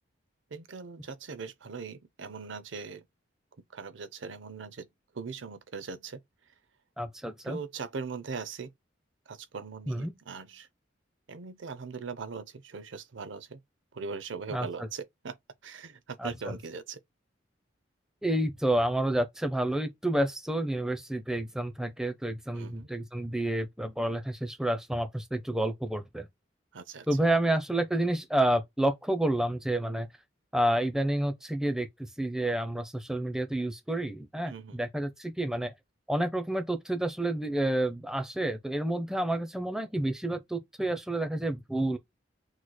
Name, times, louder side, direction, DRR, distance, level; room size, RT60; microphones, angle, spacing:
voice 1, 0.5-3.0 3.7-4.9 5.1-6.2 7.4-8.7 9.3-10.7 11.3-13.6 13.9-15.4 15.6-17.0 22.5-22.9 26.7-27.1 34.5-34.8, right 5 dB, 85° right, 0.7 m, -40 dB
voice 2, 7.0-7.6 9.9-10.1 14.5-14.9 16.2-16.6 18.2-26.3 27.1-30.1 30.5-35.7 36.1-42.0, right 1 dB, 5° right, 0.6 m, -29 dB
6.2 x 3.2 x 2.2 m
head